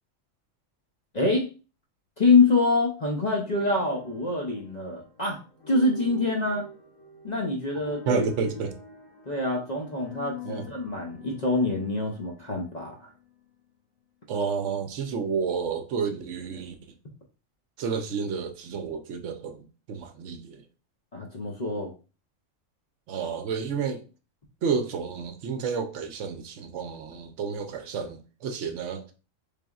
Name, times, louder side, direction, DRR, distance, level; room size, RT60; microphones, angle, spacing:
voice 1, 1.1-1.5 2.2-5.4 5.7-6.6 7.2-8.3 9.3-13.1 21.1-21.9, left 3 dB, 45° left, 0.6 m, -25 dB
sound 1, 3.4-13.5, left 2 dB, 90° left, 1.4 m, -46 dB
voice 2, 8.1-8.8 10.4-10.6 14.3-16.7 17.8-20.6 23.1-24.0 24.6-29.0, right 5 dB, 70° right, 0.9 m, -30 dB
4.0 x 3.4 x 2.3 m
omnidirectional pair, 1.3 m